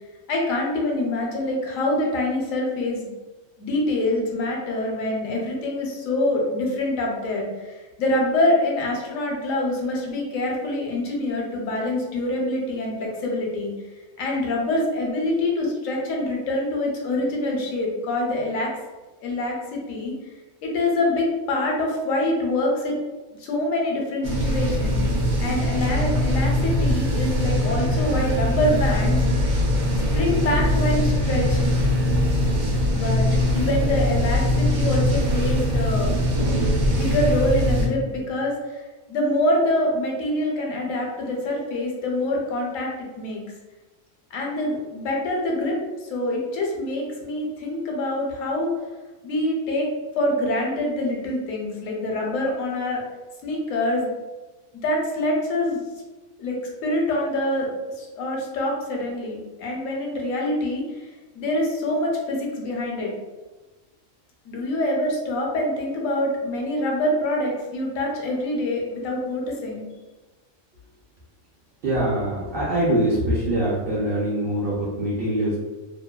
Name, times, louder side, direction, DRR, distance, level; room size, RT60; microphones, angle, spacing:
voice 1, 0.3-3.1 3.6-13.7 14.2-18.7 19.2-20.1 20.6-23.0 23.4-25.0 25.4-29.2 30.1-31.6 32.9-36.1 36.8-38.8 39.1-43.4 44.3-45.8 46.1-48.7 49.2-49.9 50.2-53.0 53.4-54.1 54.8-55.8 56.4-57.7 58.0-61.1 61.3-63.1 64.5-69.8, left 1 dB, 75° left, -1 dB, 1.0 m, -25 dB
sound 1, 24.2-37.9, left 1 dB, 90° right, 1.0 m, -22 dB
voice 2, 71.8-75.6, right 1 dB, 60° right, -7 dB, 0.6 m, -23 dB
2.6 x 2.1 x 2.2 m, 1.2 s
omnidirectional pair, 1.4 m